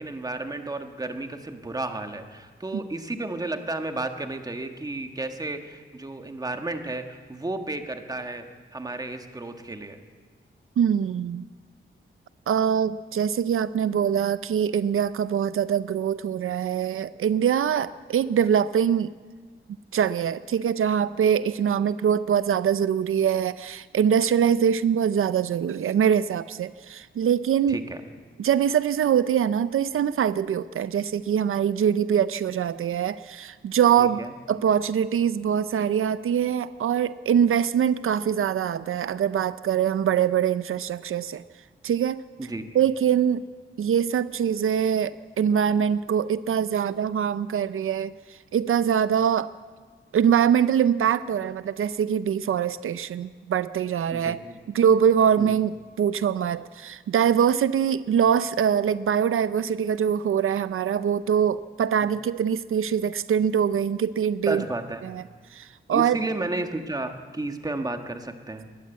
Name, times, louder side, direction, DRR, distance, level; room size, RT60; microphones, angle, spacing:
voice 1, 0.0-8.5 8.7-10.0 27.7-28.0 34.0-34.3 42.4-42.7 54.1-54.5 55.4-55.6 62.0-62.1 64.5-65.0 65.9-68.7, right 2 dB, 20° right, 6 dB, 1.5 m, -32 dB
voice 2, 10.8-11.5 12.5-19.1 19.9-27.8 28.4-34.2 34.5-41.4 41.8-42.2 42.7-43.4 43.8-49.5 50.1-54.4 54.7-64.6 65.0-65.2 65.5-66.2, right 8 dB, 80° right, 15 dB, 0.5 m, -23 dB
21.0 x 19.0 x 8.3 m, 1.5 s
wide cardioid pair, 165°, 21 cm